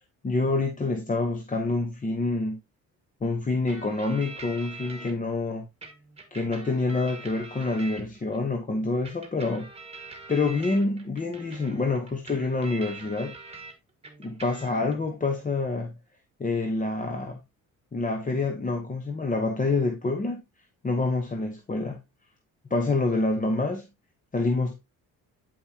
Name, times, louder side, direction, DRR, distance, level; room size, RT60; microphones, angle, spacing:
voice 1, 0.2-2.6 3.2-5.7 6.3-9.7 10.3-13.3 14.2-15.9 16.4-17.4 17.9-20.4 20.8-22.0 22.7-23.9 24.3-24.8, left 3 dB, 25° left, 1.0 m, -27 dB
sound 1, 3.7-5.1 5.8-8.4 9.0-13.7 14.0-15.0, right 3 dB, 20° right, 1.7 m, -44 dB
8.6 x 5.4 x 2.8 m
cardioid pair, 115°, 34 cm